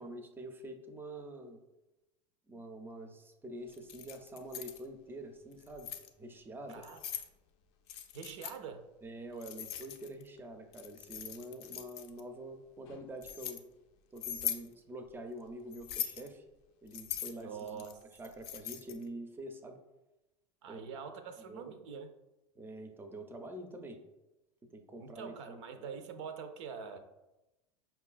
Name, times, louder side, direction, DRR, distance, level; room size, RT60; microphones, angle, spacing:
voice 1, 0.0-1.6 2.5-5.9 6.2-6.9 9.0-13.6 14.1-16.4 16.8-17.8 18.2-19.8 20.7-20.9 21.5-21.8 22.6-24.0 24.7-26.1, right 1 dB, 15° right, 6 dB, 0.4 m, -46 dB
Keys jangling, 3.7-4.8 5.5-6.1 6.7-7.3 7.9-8.6 9.4-10.3 10.7-12.2 12.9-13.6 14.2-14.7 15.7-16.3 16.9-19.0, left 10 dB, 65° left, 0.4 m, -41 dB
voice 2, 6.7-7.0 8.1-8.9 17.4-17.9 20.6-22.1 25.0-27.0, right 6 dB, 75° right, 8 dB, 0.5 m, -44 dB
5.3 x 2.3 x 2.4 m, 1.0 s
hypercardioid pair, 100°, 16 cm